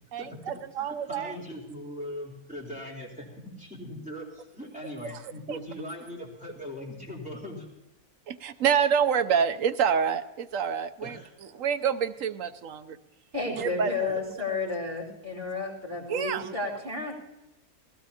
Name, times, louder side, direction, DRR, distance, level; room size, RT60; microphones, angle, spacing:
voice 1, 0.1-1.4 5.5-5.6 8.3-11.2 11.5-13.0 13.5-14.1 16.1-16.5, right 7 dB, 65° right, 10 dB, 1.0 m, -27 dB
voice 2, 0.8-3.3 3.5-7.7 11.0-11.3 14.1-14.2, left 1 dB, 5° right, -3 dB, 3.6 m, -40 dB
voice 3, 13.3-17.1, left 3 dB, 35° right, -3 dB, 4.9 m, -32 dB
20.0 x 16.5 x 2.8 m, 0.97 s
omnidirectional pair, 1.6 m